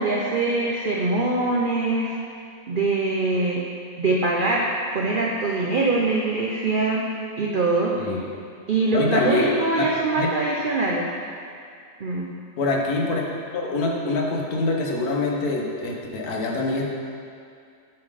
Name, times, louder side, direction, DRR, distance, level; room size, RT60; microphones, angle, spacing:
voice 1, 0.0-2.1 2.7-3.6 4.0-4.6 4.9-7.0 7.4-8.0 8.7-11.1 12.0-12.3, right 3 dB, 70° right, -2 dB, 0.5 m, -23 dB
voice 2, 7.9-8.3 8.9-9.5 9.8-9.9 10.1-10.3 12.6-13.2 13.5-16.8, left 2 dB, 75° left, -1 dB, 1.4 m, -24 dB
8.6 x 3.8 x 4.9 m, 2.4 s
omnidirectional pair, 1.7 m